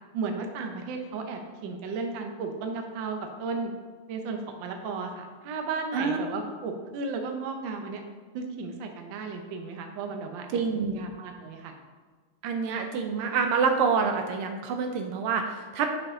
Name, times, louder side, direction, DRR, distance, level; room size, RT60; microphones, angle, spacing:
voice 1, 0.1-3.7 4.1-8.0 8.3-10.6 10.9-11.7, right 4 dB, 70° right, 4 dB, 1.4 m, -34 dB
voice 2, 10.5-11.0 12.4-15.9, right 5 dB, 85° right, 4 dB, 1.6 m, -27 dB
8.2 x 5.0 x 3.6 m, 1.4 s
omnidirectional pair, 2.3 m